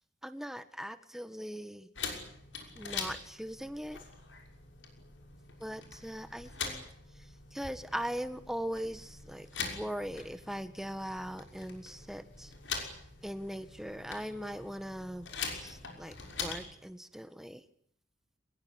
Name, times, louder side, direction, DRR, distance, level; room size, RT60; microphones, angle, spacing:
voice 1, 0.2-1.9 2.7-4.0 5.6-6.8 7.1-12.5 13.2-15.3 15.6-17.6, equal, ahead, 10 dB, 1.7 m, -40 dB
sound 1, 1.9-16.7, left 5 dB, 75° left, 6.2 m, -43 dB
24.0 x 21.5 x 9.8 m, 0.64 s
head